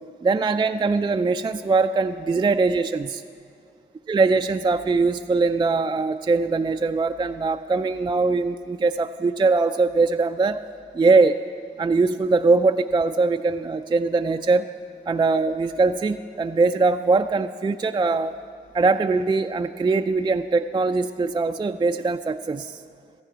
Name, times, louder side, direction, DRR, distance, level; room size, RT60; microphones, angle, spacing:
voice 1, 0.2-3.2 4.1-10.6 10.9-11.4 11.8-14.7 15.1-18.4 18.7-22.8, right 3 dB, 20° right, 7 dB, 0.3 m, -21 dB
14.0 x 10.0 x 4.6 m, 2.3 s
supercardioid pair, 45°, 21 cm